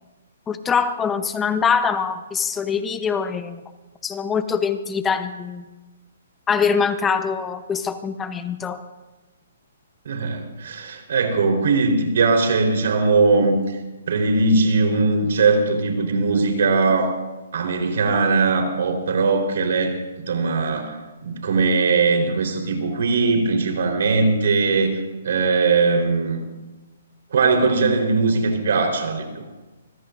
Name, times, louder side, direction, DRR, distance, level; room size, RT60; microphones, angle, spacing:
voice 1, 0.5-3.6 4.0-5.7 6.5-8.8, left 6 dB, 15° left, 10 dB, 0.8 m, -23 dB
voice 2, 10.0-13.8 14.1-17.2 17.5-21.0 21.2-26.4 27.3-29.4, right 4 dB, 65° right, 3 dB, 4.1 m, -20 dB
25.0 x 20.5 x 2.6 m, 1.1 s
hypercardioid pair, 140°, 0 cm